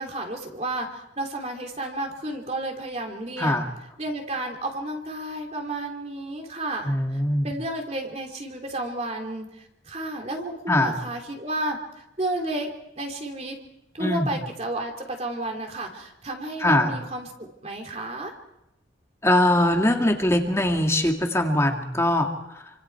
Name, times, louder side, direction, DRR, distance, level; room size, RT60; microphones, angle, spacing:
voice 1, 0.0-3.6 4.0-13.6 13.9-18.3, right 1 dB, 35° right, 3 dB, 3.0 m, -32 dB
voice 2, 3.4-3.7 6.8-7.5 10.7-11.0 14.0-14.3 16.6-17.0 19.2-22.7, left 1 dB, 15° left, 3 dB, 2.0 m, -22 dB
28.0 x 25.5 x 4.7 m, 0.87 s
head